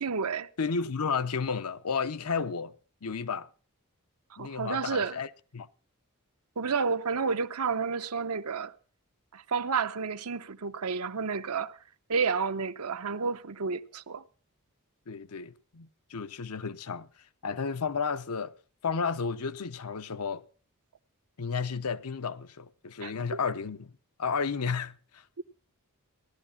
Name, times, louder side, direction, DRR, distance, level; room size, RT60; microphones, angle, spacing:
voice 1, 0.0-0.5 4.3-5.2 6.6-8.7 9.3-11.8 12.1-14.2 23.0-23.4, right 5 dB, 90° right, 0.8 m, -31 dB
voice 2, 0.6-2.7 3.0-3.5 4.4-5.3 5.5-5.7 15.1-17.1 17.4-18.5 18.8-20.4 21.4-23.9 24.2-25.4, left 5 dB, 90° left, 0.8 m, -32 dB
16.0 x 12.0 x 5.7 m
head